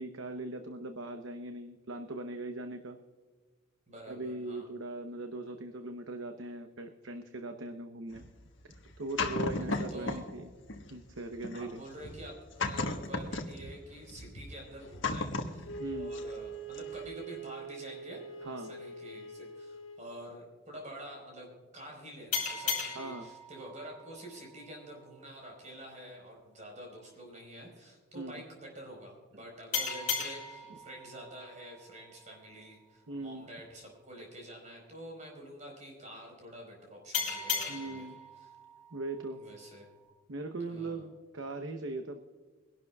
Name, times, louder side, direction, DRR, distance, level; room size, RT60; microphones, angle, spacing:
voice 1, 0.0-3.0 4.1-8.2 9.0-10.5 10.9-11.8 15.8-16.2 18.4-18.7 22.9-23.3 28.1-28.4 33.1-33.5 37.7-38.2 38.9-39.4 40.3-42.2, right 2 dB, 80° right, 6 dB, 0.9 m, -40 dB
voice 2, 3.9-4.7 9.5-10.2 11.5-38.1 38.4-38.5 39.3-39.9 40.6-41.1, right 1 dB, 35° right, 0 dB, 4.8 m, -48 dB
sound 1, 8.1-10.4 10.7-16.5 16.7-17.1, left 3 dB, 65° left, 1.4 m, -36 dB
Wind instrument woodwind instrument, 15.6-20.1, right 3 dB, 85° left, 1.6 m, -43 dB
sound 2, 22.3-25.5 29.7-33.0 37.1-40.1, left 5 dB, 45° left, 4.5 m, -38 dB
23.5 x 12.0 x 2.4 m, 1.4 s
head